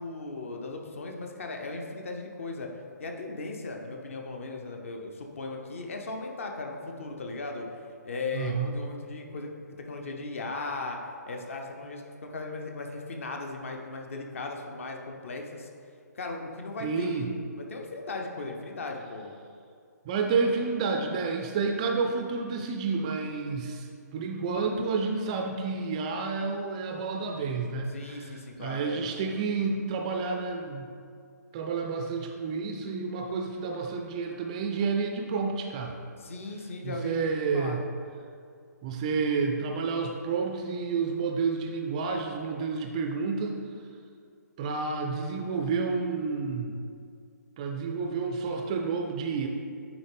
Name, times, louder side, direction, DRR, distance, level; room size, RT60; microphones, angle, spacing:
voice 1, 0.0-7.7 8.0-9.5 9.9-15.7 16.1-19.3 27.9-29.0 36.2-37.8, left 3 dB, 50° left, 2 dB, 0.8 m, -37 dB
voice 2, 8.3-8.7 16.8-17.3 20.1-28.3 28.6-30.9 31.5-36.0 36.8-37.8 38.8-43.6 44.6-46.8 47.6-49.5, right 4 dB, 20° right, 3 dB, 0.3 m, -30 dB
9.0 x 3.7 x 3.4 m, 2.3 s
figure-of-eight pair, 130°, 10 cm